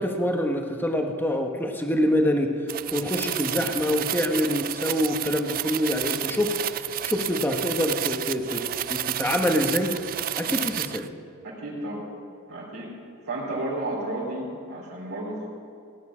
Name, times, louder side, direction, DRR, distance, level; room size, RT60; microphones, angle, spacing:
voice 1, 0.0-2.5 2.9-8.6 8.9-9.9 10.3-11.0, left 1 dB, 10° left, 3 dB, 1.2 m, -25 dB
sound 1, 2.7-11.1, right 12 dB, 40° right, 0.4 m, -30 dB
voice 2, 11.4-12.1 12.5-12.9 13.2-15.5, right 1 dB, 75° right, -7 dB, 3.5 m, -32 dB
17.0 x 9.4 x 6.2 m, 2.5 s
head